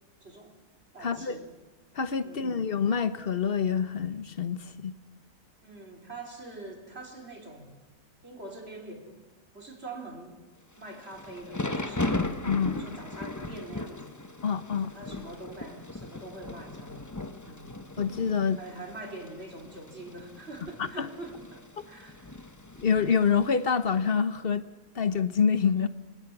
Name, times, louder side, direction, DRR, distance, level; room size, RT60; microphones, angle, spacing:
voice 1, 0.2-0.6 0.9-1.5 2.2-2.6 5.6-7.8 8.2-9.2 9.5-10.4 10.8-12.4 12.7-14.1 14.8-17.1 17.4-17.7 18.5-22.4, right 2 dB, 35° right, 2 dB, 4.0 m, -44 dB
voice 2, 1.0-1.4 1.9-4.9 12.5-12.8 14.4-14.9 18.0-18.6 21.0-21.1 22.8-24.6 24.9-25.9, left 6 dB, 40° left, 12 dB, 1.0 m, -26 dB
Thunder / Rain, 10.8-23.9, left 2 dB, 15° left, 0.6 m, -38 dB
29.5 x 17.5 x 6.1 m, 1.2 s
omnidirectional pair, 1.8 m